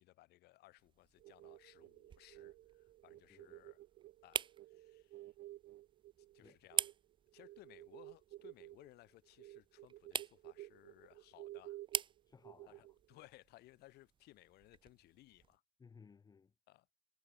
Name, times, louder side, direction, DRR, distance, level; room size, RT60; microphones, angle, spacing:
voice 1, 0.0-3.8 4.2-5.3 6.3-6.9 7.3-11.8 12.7-15.6 16.7-16.9, left 17 dB, 80° left, 6.8 m, -63 dB
sound 1, 0.8-15.6, right 7 dB, 30° right, 1.2 m, -47 dB
sound 2, 1.2-6.9 7.3-13.2, right 15 dB, 70° right, 3.9 m, -54 dB
voice 2, 3.3-3.7 6.4-6.6 12.3-12.8 15.8-16.5, left 5 dB, 25° left, 5.6 m, -61 dB
cardioid pair, 165°, 16 cm